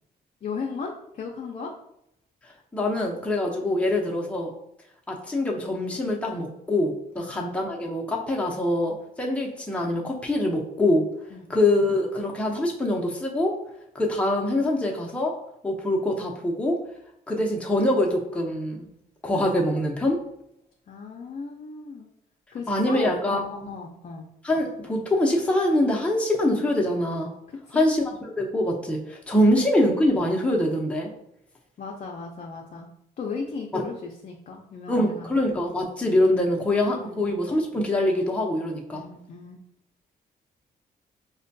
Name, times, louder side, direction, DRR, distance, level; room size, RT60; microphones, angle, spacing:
voice 1, 0.4-1.7 3.6-4.2 7.2-7.4 11.3-11.5 20.9-22.1 22.5-24.3 27.7-27.9 29.4-29.6 31.8-32.9 33.2-35.4 37.0-37.3 38.9-39.6, left 5 dB, 50° left, 0 dB, 0.5 m, -36 dB
voice 2, 2.7-4.5 5.1-11.0 11.5-13.5 13.9-15.3 15.6-16.8 17.3-18.9 19.2-20.2 22.7-23.7 24.4-27.3 27.7-31.1 33.7-33.8 34.9-39.0, left 1 dB, 5° left, -1 dB, 0.6 m, -24 dB
4.8 x 2.2 x 2.6 m, 0.78 s
cardioid pair, 85°, 17 cm